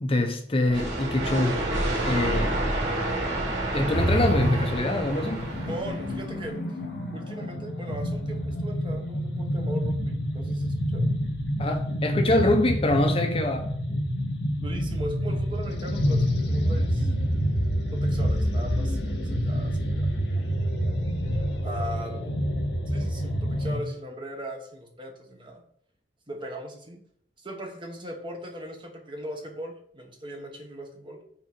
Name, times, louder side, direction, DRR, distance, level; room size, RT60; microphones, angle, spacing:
voice 1, 0.0-1.6 2.0-2.5 3.7-5.4 11.6-13.7, left 2 dB, 30° left, 0.6 m, -24 dB
sound 1, 0.7-6.4, right 1 dB, 70° right, 2.5 m, -29 dB
sound 2, 3.9-23.8, equal, 75° left, 1.6 m, -27 dB
voice 2, 5.7-6.6 7.1-11.1 14.6-17.1 17.9-20.1 20.3-20.4 21.6-22.5 22.9-25.6 26.3-27.0 27.4-31.2, equal, 30° right, 1.1 m, -39 dB
5.9 x 3.9 x 5.9 m
head